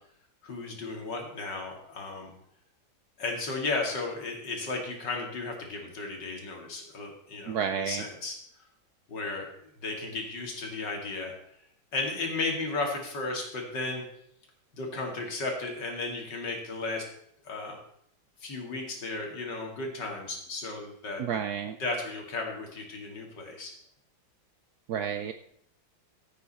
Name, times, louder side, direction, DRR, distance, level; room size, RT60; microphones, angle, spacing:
voice 1, 0.4-2.3 3.2-8.4 9.1-9.5 9.8-11.4 11.9-14.0 14.8-17.0 17.4-17.8 18.4-21.2 21.8-23.7, left 3 dB, 65° left, 1 dB, 3.0 m, -34 dB
voice 2, 7.5-8.0 21.2-21.8 24.9-25.3, right 7 dB, 65° right, 8 dB, 1.0 m, -30 dB
14.5 x 8.6 x 4.2 m, 0.71 s
omnidirectional pair, 2.0 m